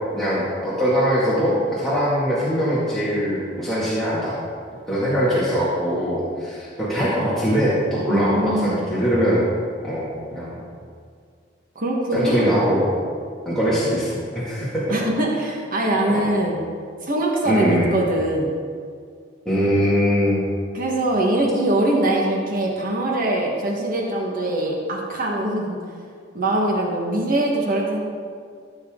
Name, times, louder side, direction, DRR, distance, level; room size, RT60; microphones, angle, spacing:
voice 1, 0.1-4.4 4.9-9.4 9.8-10.6 12.1-12.9 13.5-14.8 16.1-16.2 17.4-17.9 19.5-20.4, equal, ahead, -11 dB, 2.2 m, -22 dB
voice 2, 8.1-8.8 11.7-12.7 14.9-16.6 17.0-18.5 20.7-25.8 26.3-28.0, right 1 dB, 50° right, -2 dB, 1.5 m, -22 dB
15.0 x 7.1 x 3.8 m, 2.1 s
head